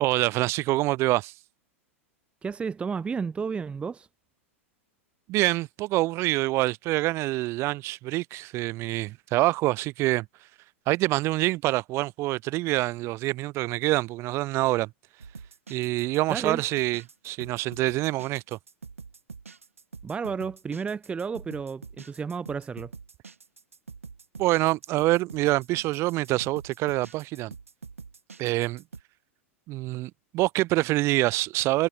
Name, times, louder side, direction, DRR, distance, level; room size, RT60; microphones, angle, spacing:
voice 1, 0.0-1.3 5.3-10.2 10.9-14.9 15.7-18.6 24.4-27.5 28.4-28.8 29.7-31.9, right 19 dB, 40° right, 1.2 m, -26 dB
voice 2, 2.4-4.1 16.3-16.6 20.0-22.9, right 5 dB, 15° right, 0.8 m, -32 dB
sound 1, 15.2-29.0, right 5 dB, 80° right, 1.6 m, -45 dB
figure-of-eight pair, 95°, 7 cm